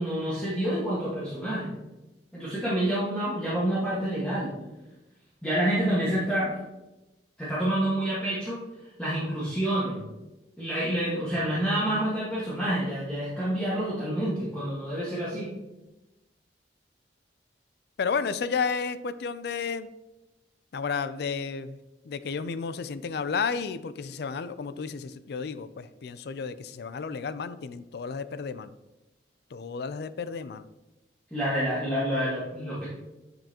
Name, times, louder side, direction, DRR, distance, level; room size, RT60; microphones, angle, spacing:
voice 1, 0.0-1.7 2.3-4.5 5.4-6.5 7.4-8.6 9.0-10.0 10.6-15.5 31.3-32.9, right 1 dB, 5° left, -10 dB, 1.5 m, -28 dB
voice 2, 18.0-19.9 20.7-21.8 22.1-28.7 29.5-30.7, left 5 dB, 65° left, 13 dB, 0.4 m, -32 dB
9.5 x 5.3 x 2.9 m, 1.0 s
head